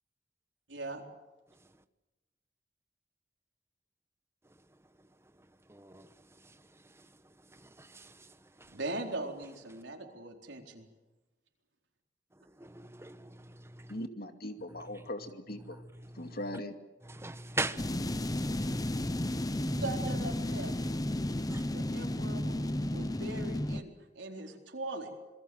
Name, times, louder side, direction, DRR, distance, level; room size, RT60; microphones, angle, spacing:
voice 1, 0.7-1.0 8.7-10.9 19.7-20.7 21.7-25.1, right 2 dB, 80° right, 4.3 m, -40 dB
voice 2, 5.7-6.1 7.6-8.1 8.6-8.7 12.6-13.9 15.0-15.1 16.0-16.4 17.0-19.8 21.5-21.6 21.9-22.4, right 2 dB, 15° right, 1.0 m, -42 dB
voice 3, 13.9-15.8 16.2-16.7, left 1 dB, 55° left, 2.4 m, -40 dB
sound 1, 17.8-23.8, left 1 dB, 20° left, 0.9 m, -33 dB
27.0 x 21.5 x 8.0 m
head